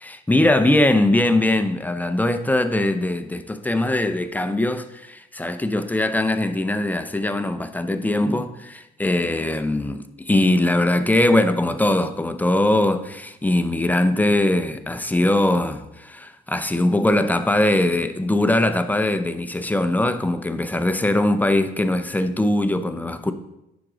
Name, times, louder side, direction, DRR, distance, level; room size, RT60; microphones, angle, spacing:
voice 1, 0.0-23.3, left 1 dB, 10° left, 0.6 m, -21 dB
9.8 x 6.1 x 3.8 m
cardioid pair, 90°, 20 cm